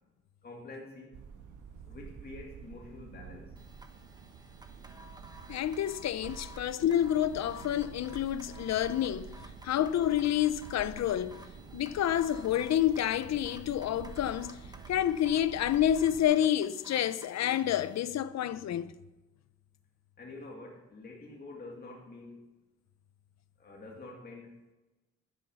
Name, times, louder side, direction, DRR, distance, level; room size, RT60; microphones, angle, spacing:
voice 1, 0.4-1.2 1.9-3.5 20.2-22.4 23.6-24.7, left 2 dB, 35° left, 2.2 m, -47 dB
sound 1, 1.1-16.2, right 6 dB, 90° right, 1.7 m, -49 dB
sound 2, 3.6-18.0, right 1 dB, 15° right, 1.0 m, -54 dB
voice 2, 5.5-9.3 9.6-11.4 11.7-14.6 14.9-18.9, left 11 dB, 65° left, 0.7 m, -29 dB
12.0 x 10.0 x 6.3 m
wide cardioid pair, 165°, 29 cm